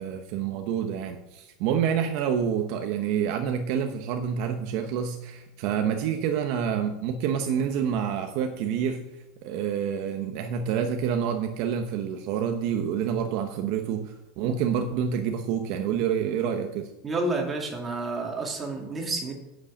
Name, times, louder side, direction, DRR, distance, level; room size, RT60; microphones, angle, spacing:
voice 1, 0.0-9.1 9.4-16.9, right 8 dB, 50° right, 5 dB, 1.1 m, -28 dB
voice 2, 17.0-19.3, right 2 dB, 15° right, 0 dB, 2.5 m, -29 dB
8.5 x 7.8 x 8.8 m, 0.92 s
supercardioid pair, 160°, 0 cm